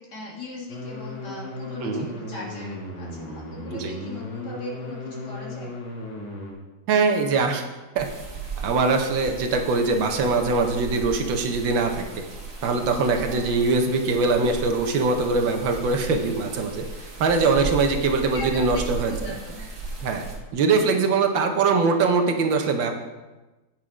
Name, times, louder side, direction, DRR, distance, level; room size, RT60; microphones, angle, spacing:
voice 1, 0.0-5.7 13.3-13.9 17.0-17.1 18.2-19.6, left 1 dB, 55° left, -3 dB, 2.3 m, -39 dB
sound 1, 0.7-6.5, left 2 dB, 80° left, 2.5 m, -36 dB
voice 2, 6.9-7.6 7.9-8.1 8.6-12.0 12.6-16.8 17.2-19.4 20.0-20.2 20.5-22.9, right 4 dB, 70° right, 5 dB, 1.5 m, -22 dB
sound 2, 8.0-20.4, right 4 dB, 50° right, 2.0 m, -36 dB
8.4 x 6.1 x 4.9 m, 1.1 s
omnidirectional pair, 2.2 m